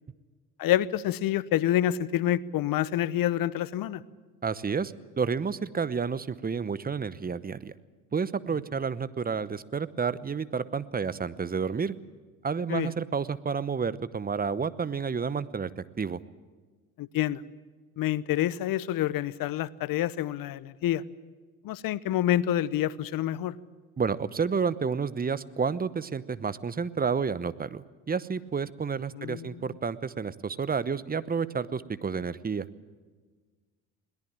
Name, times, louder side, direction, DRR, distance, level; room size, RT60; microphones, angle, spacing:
voice 1, 0.6-4.0 12.7-12.9 17.0-17.4 18.0-21.0 21.6-23.5 29.1-29.8, left 12 dB, 50° left, 18 dB, 1.0 m, -27 dB
voice 2, 4.4-7.7 8.1-11.9 12.4-15.7 16.0-16.2 24.0-32.6, right 5 dB, 20° right, 17 dB, 0.9 m, -30 dB
21.5 x 18.0 x 8.8 m, 1.4 s
hypercardioid pair, 60°, 43 cm